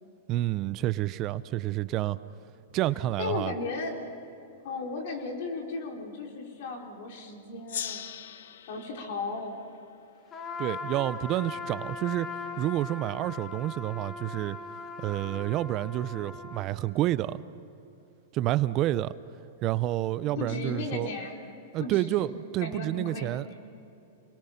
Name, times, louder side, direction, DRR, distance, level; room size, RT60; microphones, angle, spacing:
voice 1, 0.3-2.2 2.7-3.5 10.6-12.3 12.6-14.6 15.0-17.4 18.3-19.1 19.6-21.1 21.7-23.5, right 14 dB, 35° right, 0.5 m, -29 dB
voice 2, 3.2-4.0 4.6-8.1 8.7-9.5 20.2-21.3 21.8-22.3 22.6-23.4, left 3 dB, 60° left, 4.0 m, -35 dB
Gong, 7.7-10.8, left 9 dB, 75° left, 1.0 m, -41 dB
Trumpet, 10.3-16.7, left 4 dB, 25° left, 2.0 m, -39 dB
28.5 x 21.5 x 5.8 m
hypercardioid pair, 135°, 0 cm